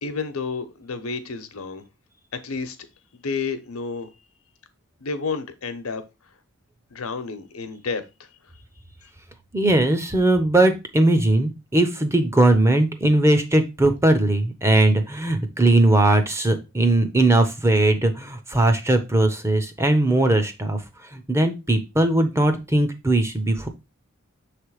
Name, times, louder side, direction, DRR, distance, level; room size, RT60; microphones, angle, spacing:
voice 1, 0.0-1.9 2.3-2.9 3.1-4.1 5.0-6.0 6.9-8.3 9.0-9.1, left 4 dB, 80° left, 9 dB, 0.9 m, -30 dB
voice 2, 9.5-20.8 21.1-23.7, right 2 dB, 15° right, 7 dB, 0.7 m, -19 dB
6.6 x 3.3 x 4.7 m, 0.25 s
head